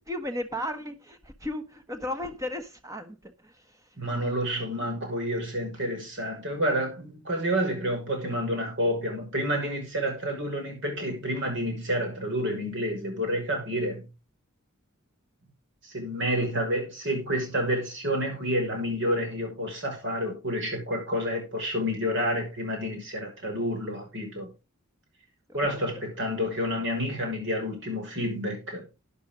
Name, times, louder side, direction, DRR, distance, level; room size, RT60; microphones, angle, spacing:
voice 1, 0.0-3.2, left 1 dB, 15° right, 1.2 m, -34 dB
voice 2, 4.0-14.0 15.8-24.5 25.5-28.8, equal, 55° right, 5.9 m, -29 dB
12.5 x 10.0 x 3.8 m
head